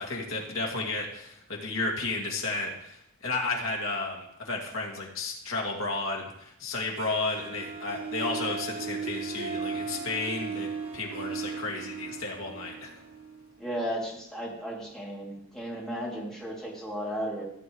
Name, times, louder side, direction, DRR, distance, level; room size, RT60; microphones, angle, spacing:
voice 1, 0.0-12.9, left 3 dB, 70° left, 0 dB, 2.4 m, -33 dB
Harp, 7.0-13.9, right 5 dB, 85° right, 1.8 m, -37 dB
voice 2, 13.6-17.4, equal, ahead, -5 dB, 2.8 m, -34 dB
16.0 x 7.8 x 3.2 m, 0.78 s
head